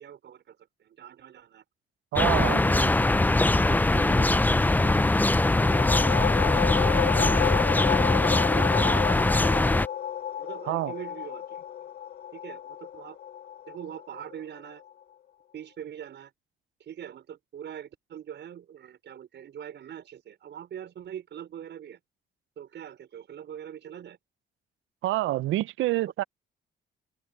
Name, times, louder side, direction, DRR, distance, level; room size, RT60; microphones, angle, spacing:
voice 1, 0.0-1.6 2.2-8.2 8.5-9.6 10.4-11.6 12.3-13.2 13.7-14.9 15.5-16.3 16.8-22.0 22.6-24.2, right 9 dB, 65° right, 5.5 m, -43 dB
voice 2, 2.1-2.6 10.7-10.9 25.0-26.2, right 16 dB, 85° right, 0.6 m, -27 dB
sound 1, 2.2-9.9, left 2 dB, 10° left, 0.5 m, -22 dB
sound 2, 5.4-14.8, left 10 dB, 55° left, 1.6 m, -32 dB
open air
cardioid pair, 90°, 20 cm